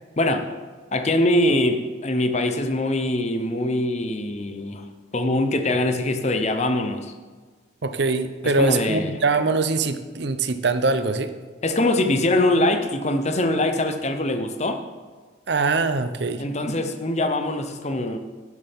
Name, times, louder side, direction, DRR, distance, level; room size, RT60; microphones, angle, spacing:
voice 1, 0.9-4.9 5.1-7.1 8.6-9.1 11.6-14.8 16.4-18.2, left 1 dB, 35° left, 7 dB, 0.7 m, -23 dB
voice 2, 7.8-11.3 15.5-16.4, right 3 dB, 55° right, 10 dB, 0.7 m, -23 dB
11.5 x 11.0 x 3.6 m, 1.5 s
head